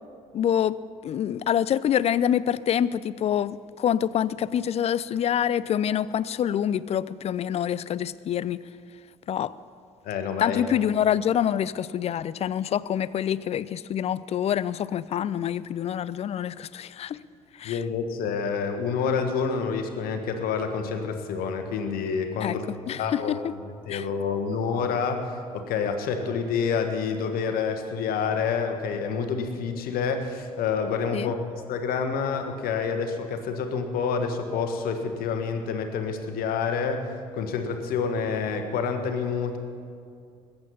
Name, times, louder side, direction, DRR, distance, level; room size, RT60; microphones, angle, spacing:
voice 1, 0.3-0.8 1.0-8.6 9.3-9.5 10.4-17.2 17.6-17.8 22.4-23.4 23.9-24.1 31.1-31.3, left 9 dB, 35° left, 19 dB, 0.4 m, -26 dB
voice 2, 10.0-10.6 17.6-22.6 23.0-23.4 23.8-39.6, left 5 dB, 55° left, 6 dB, 1.5 m, -28 dB
21.5 x 8.7 x 5.6 m, 2.4 s
figure-of-eight pair, 50°, 18 cm